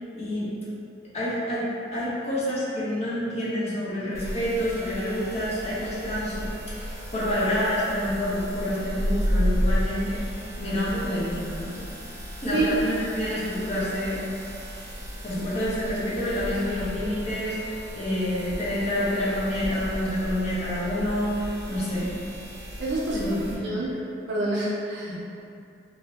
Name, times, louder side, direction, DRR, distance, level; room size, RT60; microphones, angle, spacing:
voice 1, 0.1-0.5 1.1-6.7 7.1-10.2 10.6-11.8 12.4-14.2 15.2-22.1 23.1-24.0 25.1-25.2, left 1 dB, 35° left, -9 dB, 0.7 m, -28 dB
sound 1, 4.1-23.5, equal, 15° right, 0.5 m, -33 dB
voice 2, 22.8-23.2 23.6-23.9 24.3-25.2, right 2 dB, 70° right, -5 dB, 0.4 m, -27 dB
2.5 x 2.0 x 2.9 m, 2.6 s
head